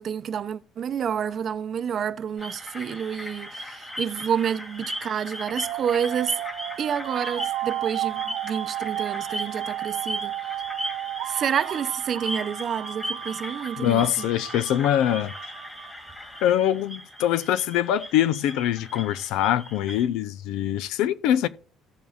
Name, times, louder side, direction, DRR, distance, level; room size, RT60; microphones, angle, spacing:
voice 1, 0.0-6.4 6.8-10.3 11.2-14.3, right 8 dB, 45° right, 0.6 m, -29 dB
sound 1, 2.4-20.1, equal, 15° left, 2.9 m, -37 dB
sound 2, 5.4-16.4, right 15 dB, 90° right, 0.8 m, -33 dB
voice 2, 13.8-15.3 16.4-21.5, left 11 dB, 90° left, 0.6 m, -23 dB
16.0 x 7.1 x 2.4 m
cardioid pair, 135°, 0 cm